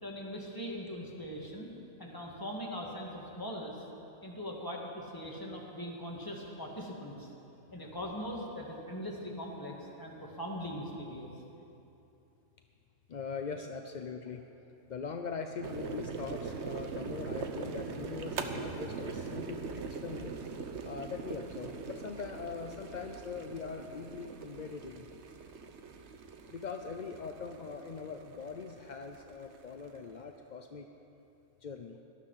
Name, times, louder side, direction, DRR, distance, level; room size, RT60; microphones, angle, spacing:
voice 1, 0.0-1.7 2.0-3.8 4.2-7.3 7.7-11.3, equal, 15° left, -2 dB, 2.1 m, -41 dB
voice 2, 13.1-14.4 14.9-20.4 20.8-25.1 26.5-30.9 31.6-32.0, left 5 dB, 50° left, 5 dB, 0.5 m, -41 dB
sound 1, 15.6-30.1, right 5 dB, 55° right, 1.1 m, -42 dB
18.5 x 12.0 x 5.7 m, 2.9 s
omnidirectional pair, 1.5 m